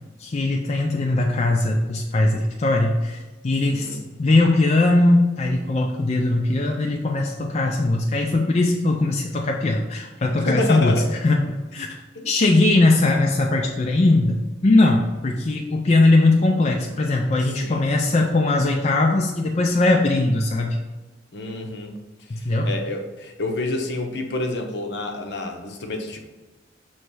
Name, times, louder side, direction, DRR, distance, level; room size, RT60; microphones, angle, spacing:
voice 1, 0.2-11.4 11.7-11.9 12.2-14.4 14.6-20.8 22.3-22.7, left 2 dB, 35° left, 1 dB, 0.4 m, -20 dB
voice 2, 3.6-4.0 10.4-11.1 12.1-12.3 17.4-17.9 21.3-22.0 22.4-26.3, left 2 dB, 65° left, 4 dB, 0.8 m, -29 dB
6.6 x 3.2 x 4.6 m, 1.2 s
head